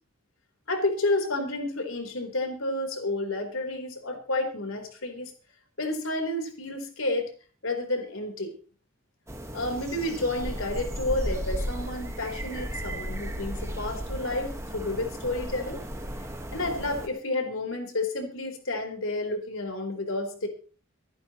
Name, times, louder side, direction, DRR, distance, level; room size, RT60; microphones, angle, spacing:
voice 1, 0.7-5.3 5.8-7.3 7.6-8.5 9.5-15.8 16.5-20.5, left 2 dB, 85° left, 4 dB, 4.1 m, -30 dB
sound 1, 9.3-17.1, equal, 15° right, 1.6 m, -35 dB
25.0 x 11.0 x 3.1 m, 0.37 s
head